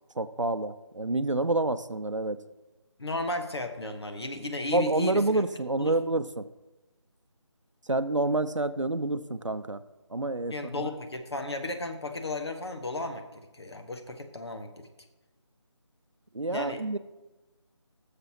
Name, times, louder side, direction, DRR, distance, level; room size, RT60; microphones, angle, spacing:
voice 1, 0.2-2.4 4.7-6.5 7.9-9.8 10.1-10.9 16.3-17.0, right 2 dB, 90° right, 12 dB, 0.6 m, -28 dB
voice 2, 3.0-5.4 5.8-6.0 10.5-14.9 16.5-16.8, left 2 dB, 60° left, 5 dB, 1.1 m, -34 dB
17.5 x 6.7 x 2.9 m, 1.1 s
figure-of-eight pair, 160°, 15 cm